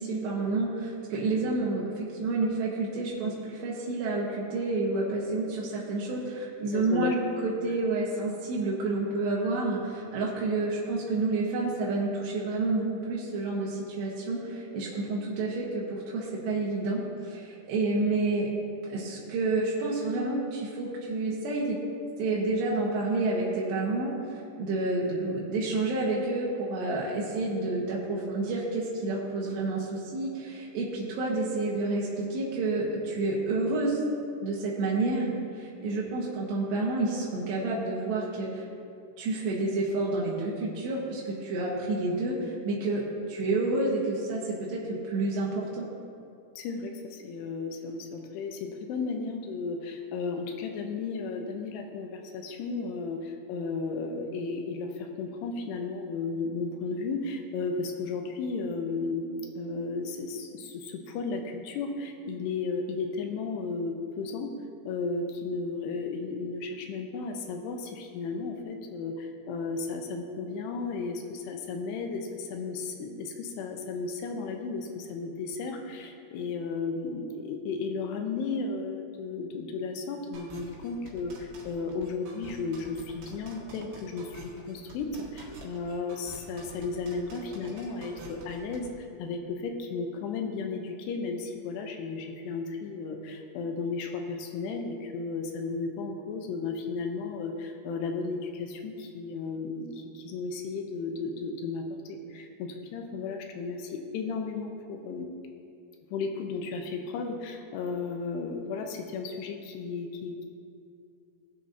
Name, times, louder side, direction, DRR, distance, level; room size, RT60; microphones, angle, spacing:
voice 1, 0.0-18.5 18.9-21.8 22.2-34.0 34.4-38.6 39.2-45.9, right 2 dB, 90° right, -5 dB, 3.4 m, -29 dB
voice 2, 6.7-7.2 46.6-64.5 64.9-105.3 106.1-110.4, left 4 dB, 85° left, 4 dB, 2.9 m, -34 dB
sound 1, 80.3-88.9, right 3 dB, 70° right, 3.5 m, -47 dB
19.0 x 7.4 x 2.8 m, 2.5 s
omnidirectional pair, 4.7 m